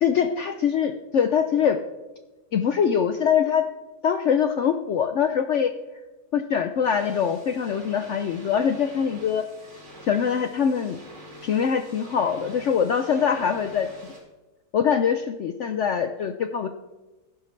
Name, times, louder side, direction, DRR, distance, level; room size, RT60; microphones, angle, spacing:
voice 1, 0.0-1.8 2.5-3.7 4.0-5.7 6.3-9.4 10.0-11.0 11.4-13.9 14.7-16.7, left 7 dB, 70° left, 8 dB, 0.7 m, -23 dB
sound 1, 6.8-14.2, equal, 90° right, 5.5 m, -46 dB
15.0 x 10.5 x 3.2 m, 1.1 s
omnidirectional pair, 1.8 m